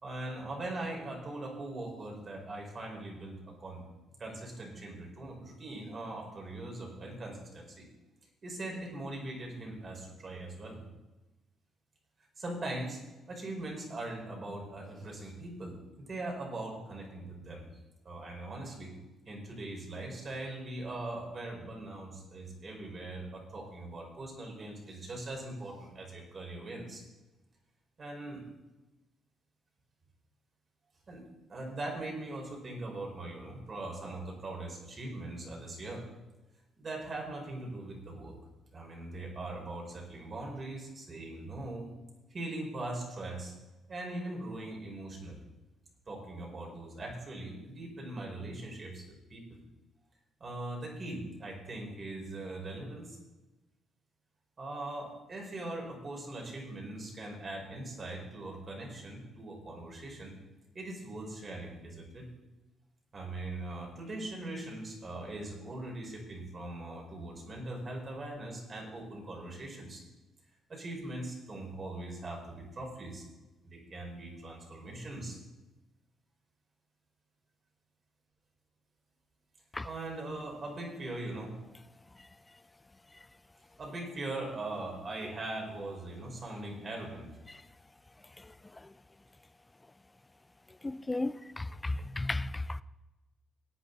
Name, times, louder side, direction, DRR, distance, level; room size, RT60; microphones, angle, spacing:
voice 1, 0.0-3.8 4.2-7.9 8.4-10.8 12.4-13.0 13.3-17.7 18.0-18.9 19.2-27.0 28.0-28.4 31.1-31.2 31.5-36.0 36.8-38.3 38.7-41.9 42.3-43.5 43.9-45.4 46.1-49.6 50.4-53.2 54.6-60.3 60.7-62.3 63.1-70.0 70.7-73.2 73.6-75.4 79.8-81.5 83.8-87.3, right 2 dB, 40° right, 5.1 m, -41 dB
voice 2, 90.8-92.8, left 2 dB, 20° left, 0.5 m, -34 dB
19.0 x 9.1 x 4.1 m
cardioid pair, 90°, 0 cm